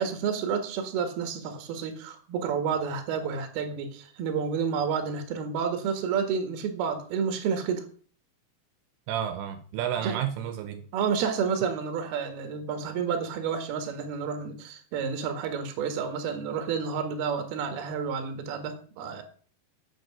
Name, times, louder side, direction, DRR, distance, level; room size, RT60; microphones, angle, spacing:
voice 1, 0.0-7.8 10.0-10.2 10.9-19.2, right 6 dB, 60° right, 3.1 m, -30 dB
voice 2, 9.1-10.8, right 10 dB, 80° right, 3.3 m, -31 dB
9.2 x 8.2 x 6.4 m
omnidirectional pair, 6.0 m